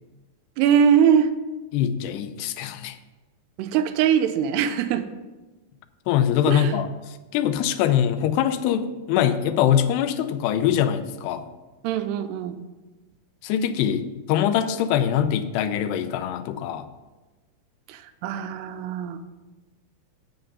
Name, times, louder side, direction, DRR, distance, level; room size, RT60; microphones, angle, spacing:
voice 1, 0.6-1.3 3.6-5.1 6.5-6.8 11.8-12.6 17.9-19.2, right 8 dB, 85° right, 9 dB, 2.6 m, -22 dB
voice 2, 1.7-3.0 6.1-6.9 7.3-11.4 13.4-16.9, left 9 dB, 85° left, 10 dB, 2.7 m, -23 dB
7.9 x 6.6 x 5.3 m, 1.2 s
omnidirectional pair, 4.7 m